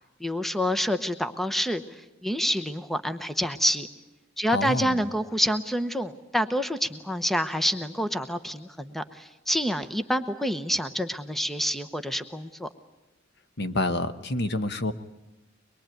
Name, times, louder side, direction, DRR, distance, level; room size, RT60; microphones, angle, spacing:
voice 1, 0.2-3.9 4.4-12.7, equal, ahead, 11 dB, 0.8 m, -27 dB
voice 2, 4.5-5.0 13.6-14.9, left 2 dB, 60° left, 10 dB, 1.2 m, -28 dB
24.0 x 22.0 x 9.2 m, 1.1 s
head